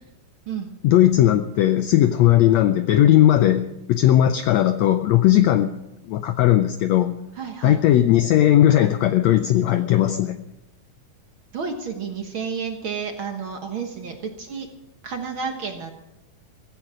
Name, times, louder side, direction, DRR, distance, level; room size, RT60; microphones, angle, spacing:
voice 1, 0.8-5.7 6.1-7.2 7.6-10.4, left 12 dB, 85° left, 10 dB, 1.5 m, -17 dB
voice 2, 7.4-7.8 11.5-14.7 15.0-15.9, right 6 dB, 55° right, 4 dB, 1.5 m, -31 dB
16.0 x 15.5 x 4.9 m, 0.91 s
omnidirectional pair, 3.8 m